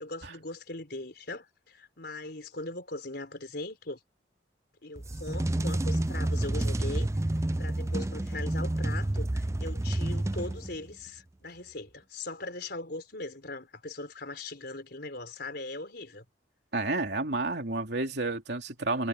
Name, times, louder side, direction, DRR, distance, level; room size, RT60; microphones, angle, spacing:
voice 1, 0.0-4.0 4.8-7.1 7.6-16.3, left 2 dB, 60° left, 4.4 m, -40 dB
sound 1, 5.0-10.9, right 1 dB, 15° right, 0.5 m, -29 dB
voice 2, 16.7-19.1, right 2 dB, 65° right, 3.2 m, -30 dB
head